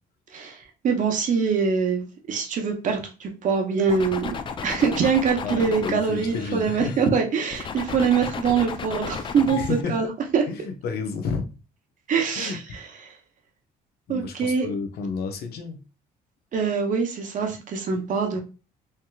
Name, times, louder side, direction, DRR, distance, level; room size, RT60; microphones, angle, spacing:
voice 1, 0.3-4.3 4.6-9.6 9.9-10.1 10.3-10.4 12.1-12.6 13.0-13.1 14.1-14.7 16.5-18.4, right 5 dB, 50° right, 3 dB, 0.7 m, -24 dB
sound 1, 3.9-7.1 7.5-9.8, left 6 dB, 30° left, 0.4 m, -34 dB
voice 2, 5.4-7.0 9.2-10.1 10.5-11.4 12.3-12.7 14.1-15.8, left 5 dB, 70° left, 6 dB, 0.7 m, -31 dB
3.3 x 2.9 x 2.2 m, 0.32 s
cardioid pair, 110°, 17 cm